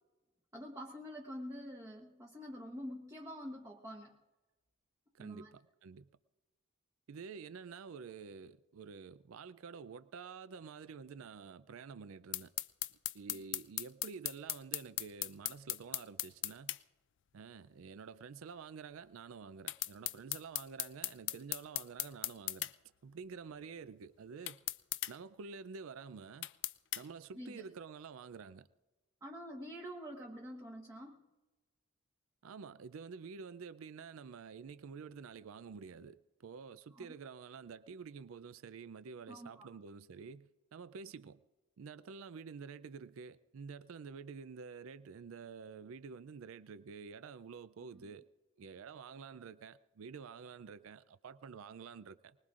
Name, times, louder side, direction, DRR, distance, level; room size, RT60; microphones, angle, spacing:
voice 1, 0.5-4.2 5.2-5.5 13.3-13.4 27.3-27.6 29.2-31.2 36.9-37.1 39.3-39.7 47.9-48.1, equal, 15° right, 1.0 m, -47 dB
voice 2, 5.1-6.1 7.1-12.5 13.1-16.8 17.3-22.7 23.0-24.6 25.1-26.5 27.0-28.7 32.4-41.4 41.8-48.2 48.6-52.4, right 5 dB, 70° right, 0.4 m, -49 dB
sound 1, 12.3-16.8 19.7-22.7 24.5-25.1 26.4-27.0, left 16 dB, 55° left, 0.4 m, -38 dB
24.5 x 20.0 x 2.5 m
head